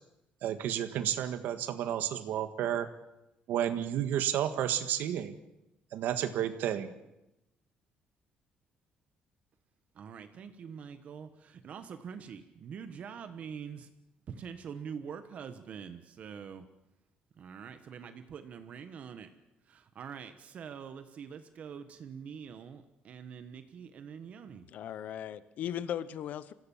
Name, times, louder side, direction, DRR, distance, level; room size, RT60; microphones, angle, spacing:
voice 1, 0.4-2.9 3.5-5.4 5.9-6.9, right 10 dB, 75° right, 9 dB, 1.6 m, -31 dB
voice 2, 9.9-13.9 14.3-16.7 17.3-19.3 19.6-24.7, right 7 dB, 45° right, 9 dB, 1.2 m, -45 dB
voice 3, 24.7-26.5, left 10 dB, 55° left, 15 dB, 0.8 m, -37 dB
26.0 x 16.5 x 7.2 m, 0.91 s
cardioid pair, 165°, 3 cm